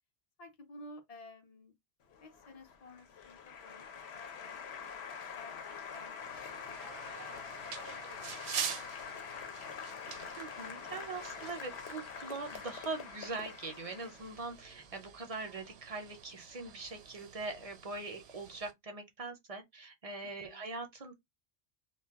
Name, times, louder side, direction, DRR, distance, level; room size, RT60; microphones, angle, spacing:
voice 1, 0.4-1.7 2.2-4.6 5.1-6.9 7.3-8.3 8.6-10.0 20.2-20.7, left 2 dB, 45° left, 0.6 m, -54 dB
Applause, 2.1-14.6, left 6 dB, 70° left, 0.9 m, -45 dB
sound 1, 6.2-18.7, right 7 dB, 75° right, 0.8 m, -46 dB
voice 2, 10.4-21.1, right 3 dB, 45° right, 0.5 m, -42 dB
2.3 x 2.2 x 3.4 m
omnidirectional pair, 1.1 m